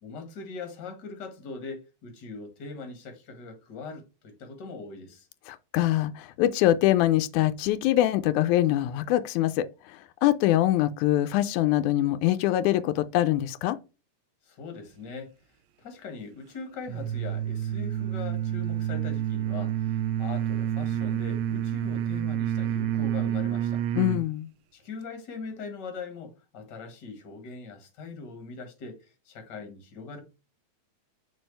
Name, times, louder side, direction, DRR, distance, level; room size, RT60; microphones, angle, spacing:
voice 1, 0.0-5.3 14.4-15.3 15.8-23.8 24.7-30.2, left 4 dB, 40° left, 2.0 m, -41 dB
voice 2, 5.5-13.8 24.0-24.5, left 14 dB, 90° left, 2.0 m, -24 dB
sound 1, 16.9-24.3, right 11 dB, 80° right, 1.8 m, -29 dB
6.3 x 4.6 x 3.2 m
omnidirectional pair, 3.3 m